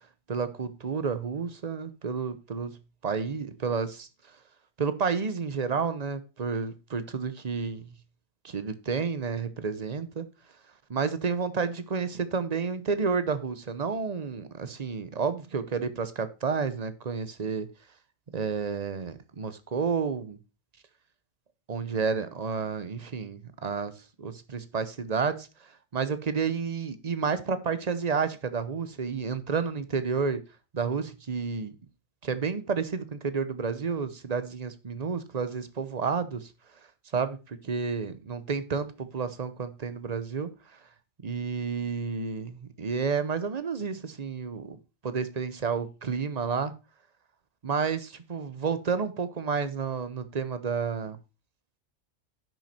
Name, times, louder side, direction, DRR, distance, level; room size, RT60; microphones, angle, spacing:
voice 1, 0.3-2.7 3.0-4.1 4.8-7.9 8.4-10.3 10.9-17.7 18.3-20.4 21.7-23.9 24.2-30.4 30.7-31.7 32.2-36.5 37.1-40.5 41.2-44.8 45.0-46.7 47.6-51.2, right 5 dB, 35° right, 0.8 m, -30 dB
10.5 x 6.2 x 4.3 m
omnidirectional pair, 1.4 m